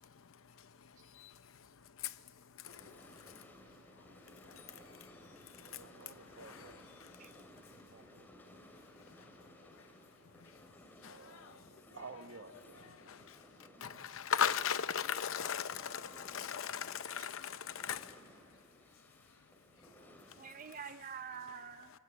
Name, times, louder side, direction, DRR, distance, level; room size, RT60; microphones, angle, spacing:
sound 1, 2.6-20.8, equal, 10° left, 2.3 m, -59 dB
voice 1, 5.6-6.8 11.1-11.6 12.0-12.9, right 4 dB, 85° right, 1.2 m, -52 dB
voice 2, 7.2-8.3 13.7-14.3 20.4-21.9, right 7 dB, 40° right, 0.6 m, -49 dB
voice 3, 13.8-18.0, left 7 dB, 80° left, 0.7 m, -36 dB
24.5 x 19.0 x 8.5 m
head